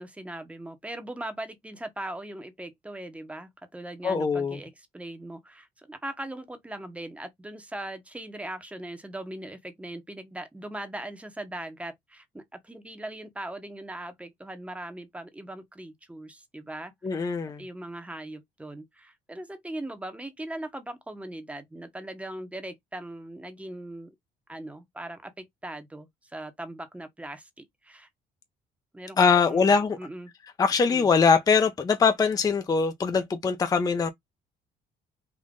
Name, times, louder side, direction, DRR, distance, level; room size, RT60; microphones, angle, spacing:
voice 1, 0.0-16.9 17.6-24.1 24.5-28.1 28.9-30.3 30.9-31.1, right 1 dB, 10° right, 0.9 m, -40 dB
voice 2, 4.0-4.6 17.0-17.6 29.2-30.0 30.6-34.1, left 5 dB, 20° left, 0.5 m, -22 dB
3.7 x 2.5 x 3.6 m
cardioid pair, 110°, 17 cm